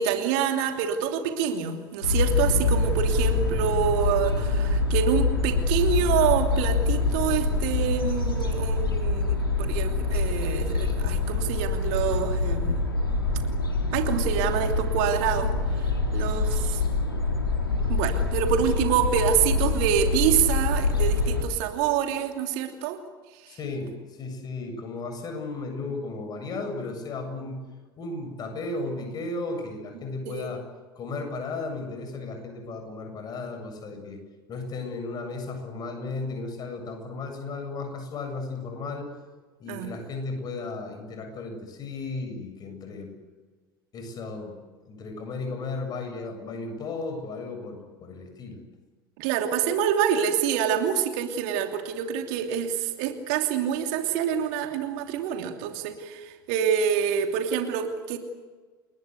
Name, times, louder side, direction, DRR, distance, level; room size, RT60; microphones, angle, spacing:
voice 1, 0.0-12.8 13.9-15.5 16.1-16.8 17.9-23.0 30.3-30.5 39.7-39.9 49.2-58.2, right 8 dB, 55° right, 5 dB, 2.9 m, -26 dB
sound 1, 2.0-21.4, left 3 dB, 80° left, 3.4 m, -25 dB
voice 2, 23.5-27.6 28.0-30.6 30.9-34.2 34.5-39.1 39.6-43.1 43.9-44.6 44.8-48.6, left 3 dB, 35° left, 5 dB, 7.8 m, -35 dB
30.0 x 21.0 x 8.2 m, 1.4 s
figure-of-eight pair, 70°, 12 cm